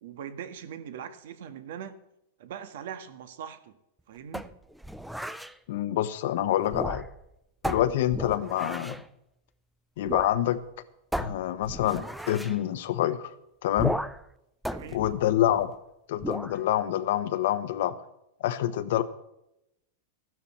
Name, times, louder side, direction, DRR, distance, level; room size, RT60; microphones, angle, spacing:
voice 1, 0.0-2.0 2.4-3.7 4.1-4.5 7.7-7.9 14.7-15.0, right 8 dB, 65° right, 10 dB, 1.6 m, -41 dB
sound 1, 4.3-5.5 6.6-7.3 7.6-9.1 10.1-10.4 10.6-10.7 11.1-12.6 13.8-14.3 14.6-15.8 16.2-16.6, equal, ahead, 0.4 m, -35 dB
voice 2, 5.7-7.0 7.6-9.0 10.0-10.6 11.2-13.3 13.6-13.9 14.9-15.7 16.1-17.9 18.4-19.0, left 12 dB, 55° left, 12 dB, 1.1 m, -26 dB
15.0 x 12.0 x 4.4 m, 0.83 s
supercardioid pair, 175°, 0 cm